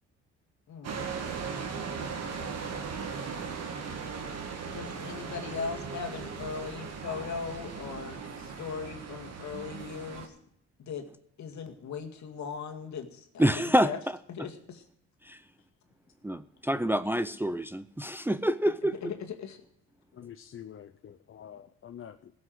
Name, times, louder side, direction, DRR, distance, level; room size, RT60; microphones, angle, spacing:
sound 1, 0.8-10.3, right 5 dB, 55° right, 2.2 m, -38 dB
voice 1, 4.6-10.4 10.8-11.0 11.4-14.0 14.3-14.8 19.0-19.6, left 6 dB, 65° left, 2.0 m, -39 dB
voice 2, 13.4-14.2 15.2-15.4 16.2-19.0, equal, 5° right, 0.5 m, -27 dB
voice 3, 20.1-22.3, left 9 dB, 45° left, 0.7 m, -47 dB
16.0 x 6.3 x 7.7 m
cardioid pair, 90°, 30 cm